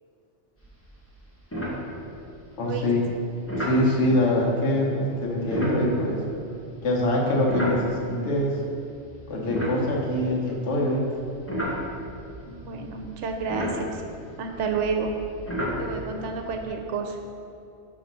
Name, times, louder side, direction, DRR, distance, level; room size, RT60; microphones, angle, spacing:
sound 1, 0.6-0.9 1.2-1.3 1.5-2.4 3.5-3.8 5.4-8.3 8.9-10.7 11.2-16.6, equal, 10° left, 1.1 m, -33 dB
voice 1, 2.6-3.0 3.6-6.2 6.8-8.6 9.3-11.0, left 1 dB, 75° left, -2 dB, 1.2 m, -24 dB
voice 2, 12.5-14.0 14.4-15.1 15.8-17.2, right 5 dB, 80° right, 3 dB, 0.9 m, -30 dB
5.5 x 3.9 x 5.4 m, 2.6 s
omnidirectional pair, 1.2 m